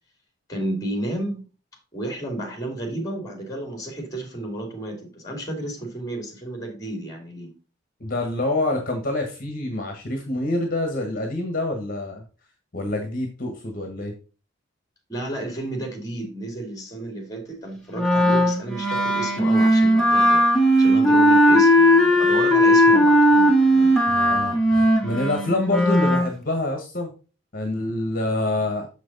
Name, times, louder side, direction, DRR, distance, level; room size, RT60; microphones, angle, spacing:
voice 1, 0.5-1.4 1.9-7.5 15.1-20.4 20.8-24.2, right 1 dB, 20° left, 3 dB, 2.5 m, -32 dB
voice 2, 8.0-12.2 12.7-14.1 24.1-27.1 27.5-28.9, left 2 dB, 45° left, 4 dB, 1.3 m, -26 dB
Wind instrument woodwind instrument, 18.0-26.3, equal, 5° left, 1.5 m, -17 dB
6.8 x 6.1 x 4.0 m, 0.34 s
head